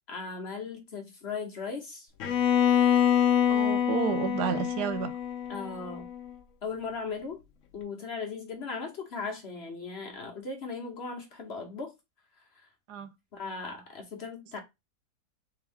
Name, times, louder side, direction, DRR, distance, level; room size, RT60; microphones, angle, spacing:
voice 1, 0.1-2.1 5.5-6.1 6.6-7.4 7.7-11.9 12.5-12.7 13.3-14.6, left 4 dB, 45° left, 1.1 m, -37 dB
Bowed string instrument, 2.2-6.2, left 10 dB, 60° left, 0.9 m, -25 dB
voice 2, 3.5-5.1 12.9-13.1, right 8 dB, 85° right, 1.2 m, -31 dB
3.6 x 3.4 x 3.4 m
omnidirectional pair, 1.7 m